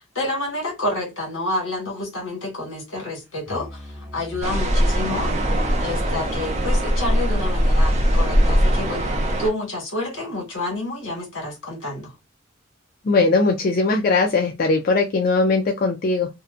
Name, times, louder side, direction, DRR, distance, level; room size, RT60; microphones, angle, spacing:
voice 1, 0.0-3.8 4.1-5.3 5.8-9.1 9.4-12.1, left 2 dB, 80° left, 1.4 m, -29 dB
Musical instrument, 3.5-9.0, left 1 dB, 10° right, 1.0 m, -39 dB
sound 1, 4.4-9.5, equal, 35° right, 0.5 m, -20 dB
voice 2, 13.0-16.3, left 3 dB, 45° left, 0.3 m, -19 dB
2.6 x 2.1 x 2.4 m
head